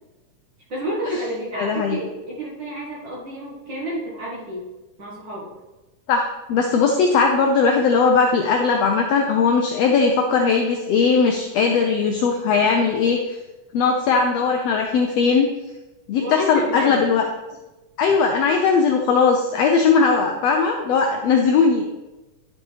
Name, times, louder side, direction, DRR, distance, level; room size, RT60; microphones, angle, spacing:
voice 1, 0.7-4.7 5.0-5.5 16.2-17.0, equal, 45° right, -6 dB, 1.7 m, -30 dB
voice 2, 1.6-2.0 6.1-13.4 13.7-15.5 16.1-17.2 18.0-21.8, left 5 dB, 80° left, 3 dB, 1.5 m, -19 dB
11.0 x 5.3 x 3.3 m, 1.1 s
omnidirectional pair, 3.5 m